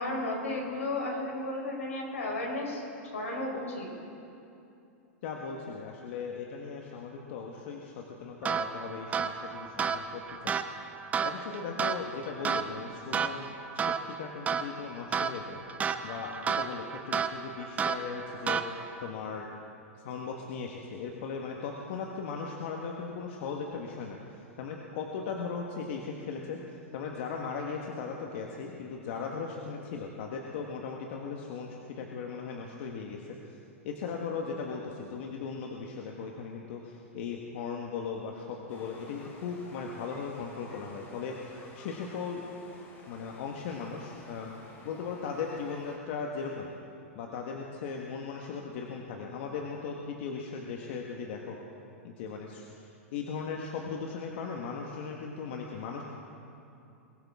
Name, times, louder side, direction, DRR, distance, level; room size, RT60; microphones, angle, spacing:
voice 1, 0.0-3.9, left 2 dB, 90° left, -1 dB, 4.4 m, -34 dB
voice 2, 5.2-10.6 11.2-15.6 16.0-19.5 20.0-24.2 24.6-33.6 33.8-42.4 43.1-46.7 47.1-51.6 52.0-56.0, left 5 dB, 60° left, 0 dB, 1.5 m, -38 dB
sound 1, 8.4-19.1, right 6 dB, 20° right, 0.7 m, -33 dB
sound 2, 38.7-46.0, left 2 dB, 30° left, 3.2 m, -53 dB
22.5 x 14.5 x 3.7 m, 2.7 s
hypercardioid pair, 115°, 7 cm